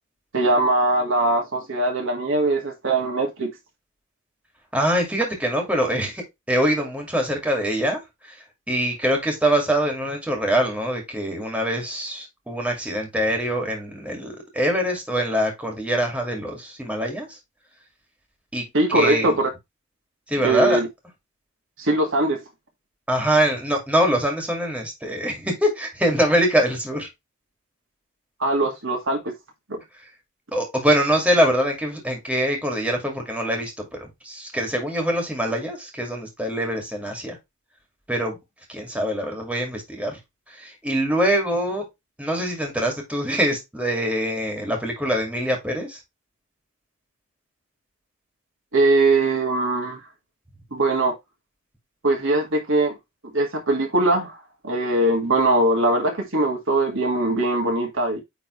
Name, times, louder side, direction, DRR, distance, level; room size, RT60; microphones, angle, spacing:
voice 1, 0.3-3.5 18.7-19.5 20.4-20.9 21.8-22.4 28.4-29.2 29.7-29.8 48.7-50.0 50.7-51.1 52.0-53.0 53.3-54.4 54.6-58.2, right 2 dB, 65° right, 2.0 m, -21 dB
voice 2, 4.7-8.4 8.7-17.4 18.5-18.6 18.9-19.4 20.3-20.8 23.1-27.1 30.5-37.4 38.1-38.4 38.7-40.2 40.5-41.9 42.2-46.0, equal, 5° right, 2.2 m, -24 dB
9.1 x 3.8 x 3.1 m
head